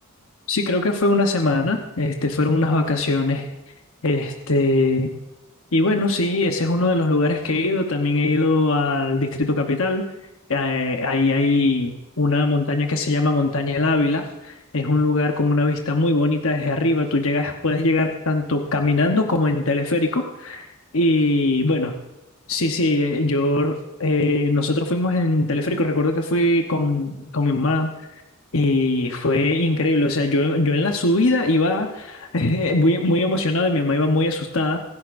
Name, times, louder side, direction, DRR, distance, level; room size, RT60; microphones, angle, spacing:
voice 1, 0.5-3.5 4.0-5.1 5.7-10.0 10.5-20.7 20.9-21.9 22.5-27.9 28.5-34.8, left 2 dB, 75° left, 4 dB, 1.0 m, -21 dB
25.5 x 10.5 x 2.6 m, 0.96 s
head